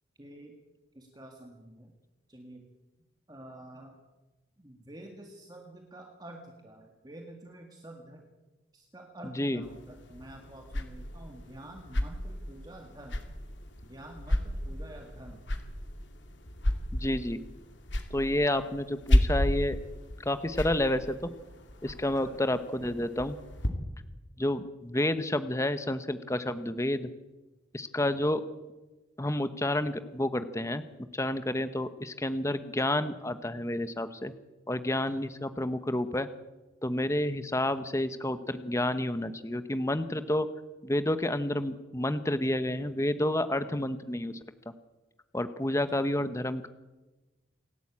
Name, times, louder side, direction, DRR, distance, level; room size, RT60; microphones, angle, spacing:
voice 1, 0.2-0.6 0.9-1.9 2.3-2.7 3.3-4.0 4.6-8.2 8.7-13.2 13.8-15.5 22.2-22.4 35.1-35.2, right 1 dB, 20° right, 2 dB, 1.9 m, -48 dB
sound 1, 9.6-23.7, left 1 dB, 75° left, 2.4 m, -33 dB
voice 2, 17.0-17.4 18.1-19.8 20.3-21.3 21.8-23.4 24.4-27.1 27.7-28.4 29.2-30.8 31.1-34.3 34.7-36.3 36.8-40.5 40.8-44.3 45.3-46.7, left 1 dB, 15° left, 11 dB, 0.9 m, -30 dB
27.0 x 12.0 x 8.6 m, 1.1 s
head